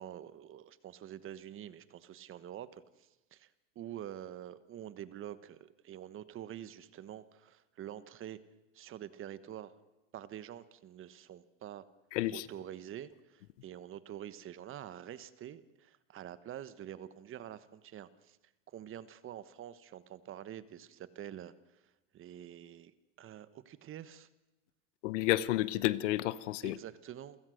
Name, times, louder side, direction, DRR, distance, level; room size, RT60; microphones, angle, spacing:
voice 1, 0.0-3.5 3.7-8.4 8.7-9.7 10.1-11.8 12.3-18.4 18.7-21.8 22.1-22.9 23.2-24.3 26.6-27.4, right 11 dB, 35° right, 1.2 m, -47 dB
voice 2, 12.1-12.5 25.0-26.8, left 16 dB, 80° left, 1.0 m, -31 dB
28.5 x 16.5 x 6.4 m
supercardioid pair, 120°, 36 cm